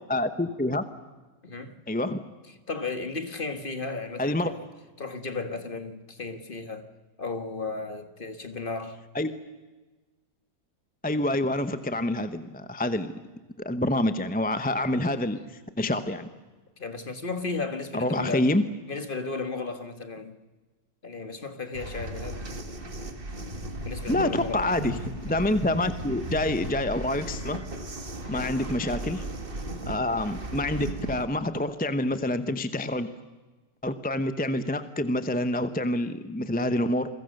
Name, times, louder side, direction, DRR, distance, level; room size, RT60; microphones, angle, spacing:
voice 1, 0.1-0.9 1.9-2.2 4.2-4.5 9.1-9.3 11.0-13.1 13.6-15.4 15.8-16.3 17.9-18.6 24.1-25.0 25.2-27.6 28.3-29.2 29.9-33.1 33.8-37.1, left 1 dB, 10° left, 10 dB, 0.6 m, -27 dB
voice 2, 1.4-1.8 2.7-4.6 5.0-6.9 7.2-9.0 16.8-18.5 18.9-20.4 21.0-22.4 23.8-24.7 28.2-28.5, left 3 dB, 30° left, 8 dB, 1.7 m, -34 dB
sound 1, 21.7-31.2, right 2 dB, 35° right, 1.9 m, -36 dB
28.5 x 22.5 x 6.6 m, 1.2 s
omnidirectional pair, 1.8 m